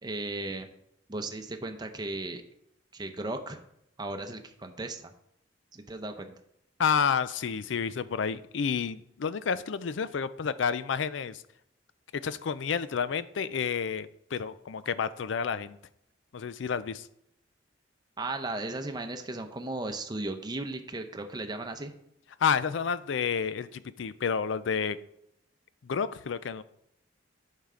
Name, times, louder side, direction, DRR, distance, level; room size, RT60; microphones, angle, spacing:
voice 1, 0.0-0.7 1.1-2.4 2.9-3.6 4.0-5.1 5.7-6.3 18.2-21.9, right 2 dB, 20° right, 6 dB, 0.7 m, -36 dB
voice 2, 6.8-11.4 12.2-15.8 16.3-17.1 22.4-25.0 25.8-26.6, left 6 dB, 75° left, 15 dB, 0.4 m, -30 dB
8.9 x 5.7 x 3.8 m, 0.77 s
head